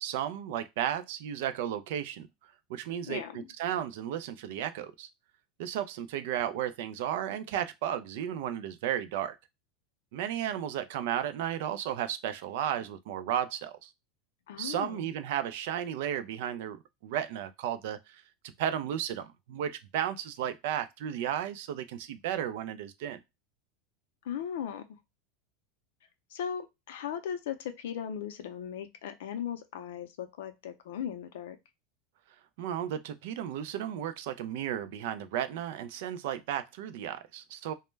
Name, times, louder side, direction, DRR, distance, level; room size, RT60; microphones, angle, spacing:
voice 1, 0.0-2.3 2.7-3.2 3.6-5.1 5.6-9.4 10.1-13.9 14.6-23.2 32.6-37.7, right 10 dB, 65° right, 0.3 m, -34 dB
voice 2, 3.1-3.5 14.5-15.0 24.2-24.8 26.3-31.6, left 9 dB, 85° left, 0.4 m, -37 dB
2.2 x 2.0 x 3.1 m
supercardioid pair, 170°, 0 cm